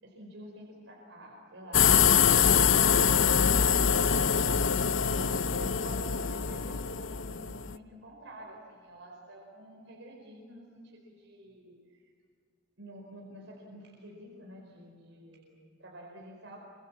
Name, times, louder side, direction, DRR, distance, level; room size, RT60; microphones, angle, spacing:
voice 1, 0.0-2.5 2.9-4.1 5.3-12.0 12.8-16.6, right 1 dB, 80° right, -1 dB, 4.9 m, -48 dB
sound 1, 1.7-7.8, left 7 dB, 75° left, 0.8 m, -24 dB
27.0 x 25.0 x 7.2 m, 2.3 s
head